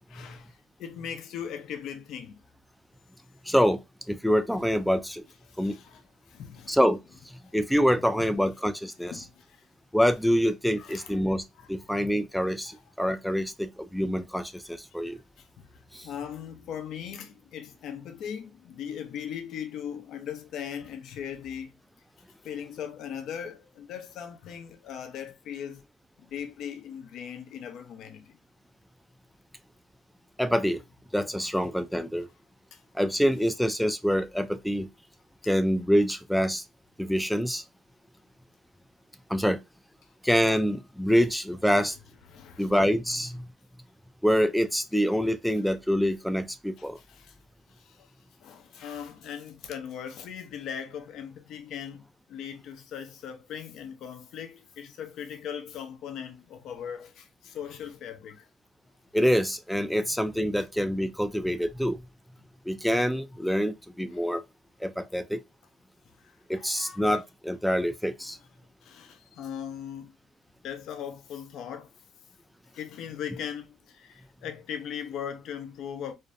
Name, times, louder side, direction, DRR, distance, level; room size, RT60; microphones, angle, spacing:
voice 1, 0.1-2.4 5.5-6.0 6.3-6.8 7.4-7.5 7.9-8.3 9.1-9.6 10.8-11.2 11.6-11.9 12.7-12.8 15.4-15.7 16.0-21.7 22.4-25.8 26.2-28.4 31.4-31.7 32.7-32.8 40.4-40.8 42.3-42.7 46.8-47.3 47.7-48.1 48.4-58.5 60.6-60.7 66.2-67.2 68.8-70.1 70.6-71.9 72.7-76.1, left 8 dB, 70° left, 0.5 m, -39 dB
voice 2, 3.5-3.8 4.1-5.2 5.6-5.8 6.7-7.0 7.5-9.1 9.9-15.2 15.9-16.1 30.4-30.8 31.1-32.3 32.9-34.9 35.5-36.6 37.0-37.6 39.3-39.6 40.2-42.0 42.6-43.4 44.2-47.0 59.1-62.0 62.7-64.4 64.8-65.4 66.5-68.4, equal, ahead, 0.3 m, -26 dB
2.5 x 2.1 x 2.5 m
cardioid pair, 90°, 0 cm